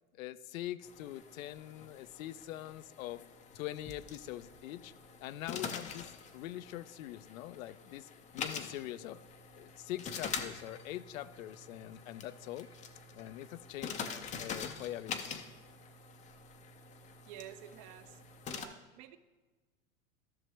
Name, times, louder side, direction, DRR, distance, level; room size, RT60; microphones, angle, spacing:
voice 1, 0.1-3.2 3.5-4.9 5.2-9.2 9.5-12.7 13.1-14.1 14.4-15.1, left 14 dB, 70° left, 15 dB, 0.6 m, -43 dB
sound 1, 0.8-18.6, left 6 dB, 15° left, 0.5 m, -45 dB
voice 2, 17.3-18.2 18.5-19.2, right 11 dB, 40° right, 11 dB, 0.5 m, -50 dB
13.5 x 6.0 x 3.3 m, 1.3 s
hypercardioid pair, 120°, 43 cm